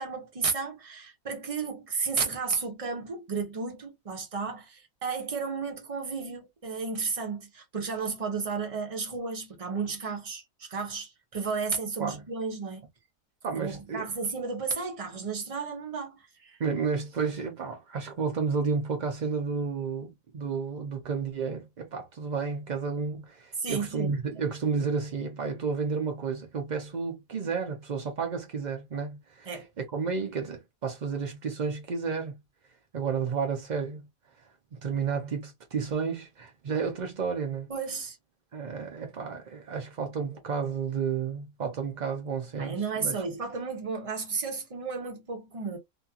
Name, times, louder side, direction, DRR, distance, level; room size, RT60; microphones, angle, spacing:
voice 1, 0.0-12.8 13.6-16.6 23.6-24.1 29.5-29.7 37.7-38.2 42.6-45.8, right 5 dB, 35° right, 0.6 m, -33 dB
voice 2, 13.4-14.1 16.6-29.5 29.8-32.4 32.9-34.1 34.7-37.7 38.5-43.2, right 5 dB, 85° right, 0.4 m, -31 dB
2.7 x 2.4 x 2.7 m
omnidirectional pair, 1.7 m